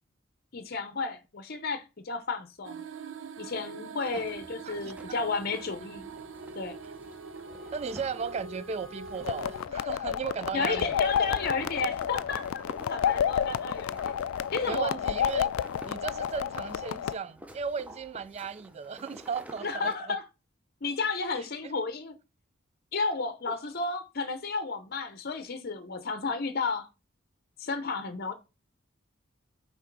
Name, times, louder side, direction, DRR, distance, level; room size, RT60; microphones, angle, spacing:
voice 1, 0.5-2.8 3.4-6.1 6.6-6.8 10.5-14.1 14.5-15.0 19.6-20.2 20.8-22.1 22.9-26.9 27.6-28.3, left 4 dB, 50° left, 0.7 m, -32 dB
sound 1, 2.6-9.7, right 4 dB, 65° right, 0.7 m, -43 dB
sound 2, 4.1-20.0, right 1 dB, 5° right, 0.7 m, -50 dB
voice 2, 4.6-5.2 7.7-11.0 14.7-15.5 15.8-20.2 21.4-21.7, right 6 dB, 30° right, 0.3 m, -36 dB
sound 3, 9.2-17.1, left 8 dB, 80° left, 0.3 m, -30 dB
6.0 x 3.8 x 4.6 m
head